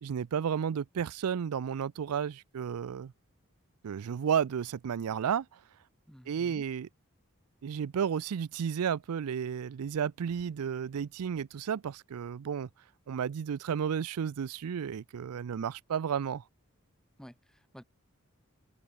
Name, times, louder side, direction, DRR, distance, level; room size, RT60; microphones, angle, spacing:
voice 1, 0.0-3.1 3.8-5.6 6.3-6.9 7.6-12.7 13.1-16.4, right 7 dB, 85° right, 0.4 m, -32 dB
voice 2, 6.1-6.6 17.2-17.8, equal, 5° left, 3.3 m, -51 dB
head